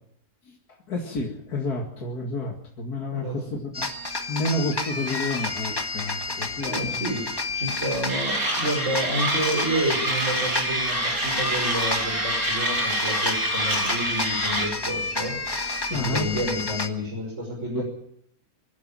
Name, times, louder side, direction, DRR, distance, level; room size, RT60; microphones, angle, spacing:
voice 1, 0.5-3.9 4.3-7.0 15.9-16.3 17.7-17.8, left 2 dB, 75° left, 1 dB, 2.7 m, -30 dB
voice 2, 3.1-3.6 6.6-7.3 7.5-15.4 15.9-17.8, equal, 50° right, -3 dB, 6.3 m, -30 dB
sound 1, 3.7-16.9, left 3 dB, 15° left, 1.6 m, -30 dB
Mechanisms, 8.1-14.7, right 1 dB, 65° right, 5.2 m, -27 dB
25.0 x 12.0 x 9.0 m, 0.69 s
omnidirectional pair, 1.7 m